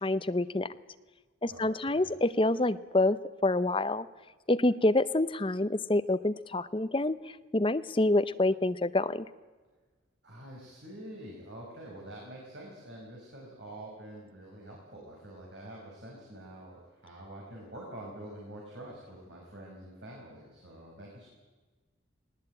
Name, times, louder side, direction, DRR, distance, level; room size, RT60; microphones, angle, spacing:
voice 1, 0.0-0.7 1.4-3.2 3.4-4.1 4.5-7.2 7.5-9.2, left 2 dB, 25° left, 12 dB, 0.7 m, -27 dB
voice 2, 1.5-2.1 10.2-21.3, right 1 dB, 65° right, -3 dB, 5.7 m, -46 dB
20.0 x 19.5 x 8.9 m, 1.3 s
head